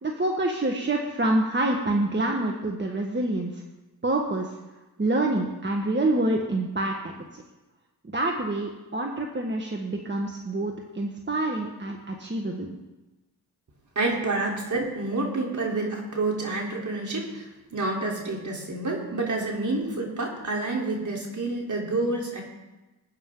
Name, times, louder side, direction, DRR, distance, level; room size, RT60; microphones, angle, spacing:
voice 1, 0.0-3.6 4.0-4.5 5.0-7.0 7.3-7.4 8.1-12.7, right 2 dB, 30° right, 1 dB, 1.6 m, -27 dB
voice 2, 14.0-22.4, right 2 dB, 50° right, -1 dB, 3.7 m, -28 dB
20.5 x 8.9 x 3.9 m, 1.1 s
cardioid pair, 65°, 38 cm